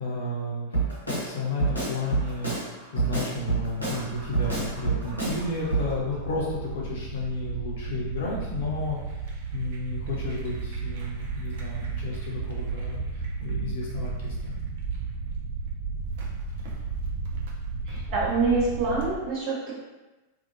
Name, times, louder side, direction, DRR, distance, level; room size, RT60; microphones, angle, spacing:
voice 1, 0.0-9.0 9.5-13.0 13.4-14.5, left 2 dB, 55° left, -4 dB, 0.7 m, -32 dB
Drum kit, 0.7-1.3 1.6-2.6 3.0-4.0 4.3-5.4 5.7-5.9, right 4 dB, 85° left, 0.9 m, -27 dB
sound 1, 2.1-19.1, right 4 dB, 55° right, 0.5 m, -34 dB
voice 2, 17.9-19.7, right 3 dB, 40° right, -5 dB, 0.9 m, -26 dB
2.7 x 2.4 x 2.7 m, 1.1 s
figure-of-eight pair, 90°, 0 cm